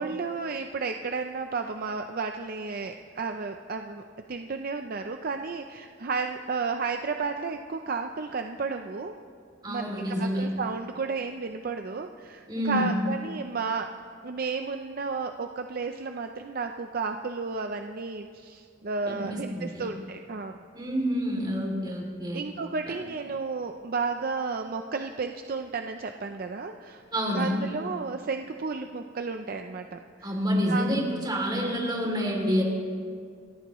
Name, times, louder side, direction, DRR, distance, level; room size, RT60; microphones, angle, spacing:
voice 1, 0.0-4.0 4.3-9.1 9.7-9.9 10.2-14.0 14.2-20.6 22.3-27.0 27.3-30.3 30.7-30.9, right 4 dB, 50° right, 6 dB, 0.5 m, -32 dB
voice 2, 9.6-10.5 12.5-12.9 19.1-19.9 20.7-22.4 22.8-22.9 27.1-27.6 30.2-32.6, equal, 20° right, -1 dB, 2.8 m, -28 dB
28.0 x 13.5 x 3.1 m, 2.2 s
head